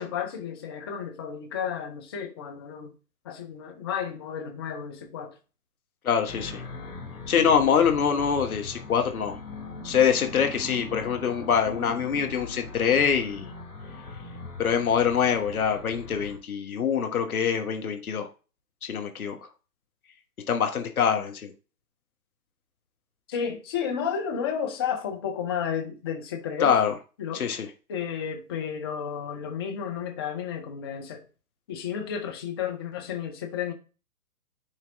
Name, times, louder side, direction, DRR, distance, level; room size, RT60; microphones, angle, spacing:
voice 1, 0.0-2.9 3.2-5.3 23.3-26.7 27.2-27.4 27.9-31.2 31.7-33.7, left 7 dB, 15° left, 0.6 m, -32 dB
voice 2, 6.0-6.6 7.3-9.4 9.8-13.5 14.6-18.3 18.8-19.4 20.5-21.5 26.6-26.9 27.3-27.7, left 7 dB, 60° left, 1.3 m, -24 dB
sound 1, 6.3-16.4, left 3 dB, 80° left, 2.7 m, -40 dB
9.9 x 3.3 x 3.4 m
figure-of-eight pair, 125°, 47 cm